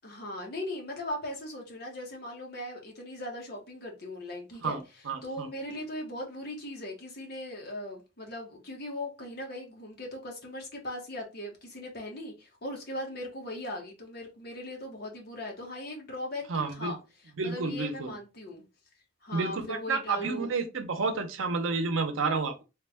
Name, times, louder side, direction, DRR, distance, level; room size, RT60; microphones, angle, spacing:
voice 1, 0.0-4.8 5.2-17.0 17.2-18.7 19.2-20.5, left 1 dB, 55° left, 1.1 m, -39 dB
voice 2, 5.1-5.5 16.5-16.9 17.4-18.1 19.3-22.6, right 4 dB, 85° right, 0.7 m, -30 dB
3.3 x 2.2 x 3.4 m
head